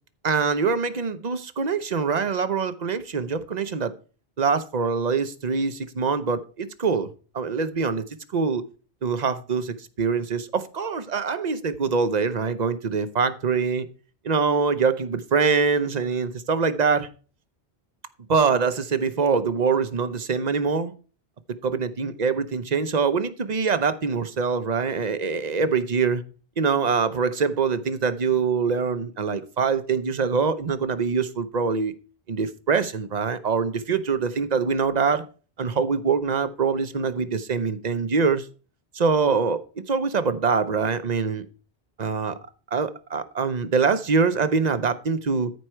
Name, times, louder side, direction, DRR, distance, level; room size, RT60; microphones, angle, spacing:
voice 1, 0.2-3.9 4.4-7.1 7.3-8.0 8.3-8.6 9.0-13.9 14.2-17.1 18.3-20.9 21.6-26.2 26.6-31.9 32.3-35.2 35.6-38.5 38.9-41.4 42.0-42.3 42.7-45.5, right 5 dB, 45° right, 0.8 m, -24 dB
13.5 x 4.8 x 4.4 m
omnidirectional pair, 1.1 m